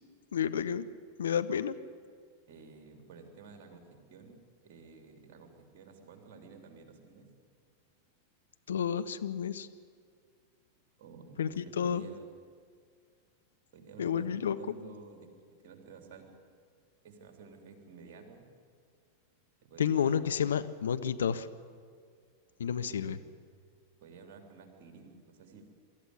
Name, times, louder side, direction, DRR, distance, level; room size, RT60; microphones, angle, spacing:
voice 1, 0.3-0.9 1.2-1.8 8.7-9.7 11.4-12.1 14.0-14.6 19.8-21.5 22.6-23.2, left 8 dB, 65° left, 12 dB, 0.7 m, -30 dB
voice 2, 2.5-7.3 11.0-12.4 13.7-15.4 15.6-16.3 17.0-18.5 19.7-20.2 22.8-23.2 24.0-25.6, right 5 dB, 50° right, 5 dB, 3.3 m, -52 dB
23.5 x 13.5 x 9.6 m, 2.1 s
figure-of-eight pair, 90°, 0 cm